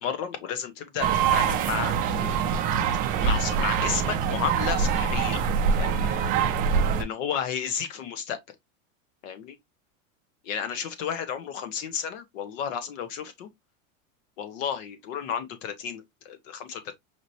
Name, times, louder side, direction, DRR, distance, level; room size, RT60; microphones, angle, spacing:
voice 1, 0.0-2.5 3.2-5.4 5.8-6.1 6.9-8.4 9.2-9.6 10.4-13.5 14.4-16.9, left 7 dB, 70° left, 1.4 m, -32 dB
sound 1, 1.0-7.0, right 6 dB, 25° right, 0.3 m, -24 dB
5.0 x 3.0 x 2.6 m
supercardioid pair, 160°, 40 cm